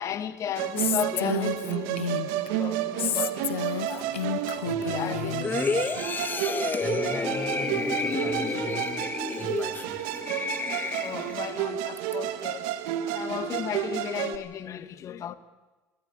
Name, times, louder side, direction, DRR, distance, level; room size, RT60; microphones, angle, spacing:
voice 1, 0.0-5.3 10.9-12.7 13.0-15.3, left 9 dB, 55° left, 1.5 m, -35 dB
Musical instrument, 0.5-14.4, right 12 dB, 75° right, 1.5 m, -31 dB
Female speech woman speaking, 0.8-2.5 3.0-5.5, left 11 dB, 90° left, 0.6 m, -31 dB
voice 2, 4.6-6.4 6.8-9.1 9.4-10.0, left 2 dB, ahead, 5.8 m, -40 dB
sound 1, 5.4-11.5 12.0-12.1, left 4 dB, 30° left, 1.4 m, -30 dB
22.0 x 18.0 x 8.6 m
hypercardioid pair, 60°, 7 cm